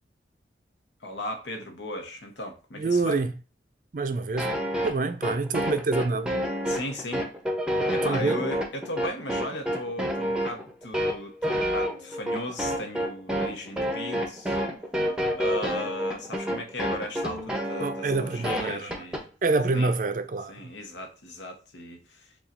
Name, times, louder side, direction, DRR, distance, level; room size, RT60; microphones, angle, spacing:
voice 1, 1.0-3.2 6.7-7.3 7.9-14.6 15.4-19.2 19.7-19.9 20.5-22.3, left 1 dB, 80° left, 1.0 m, -36 dB
voice 2, 2.7-3.3 3.9-4.6 4.8-6.4 8.0-8.4 17.8-19.0 19.4-20.5, right 3 dB, 45° right, 0.4 m, -26 dB
sound 1, 4.4-19.2, equal, 5° right, 0.6 m, -29 dB
6.9 x 2.4 x 2.5 m
head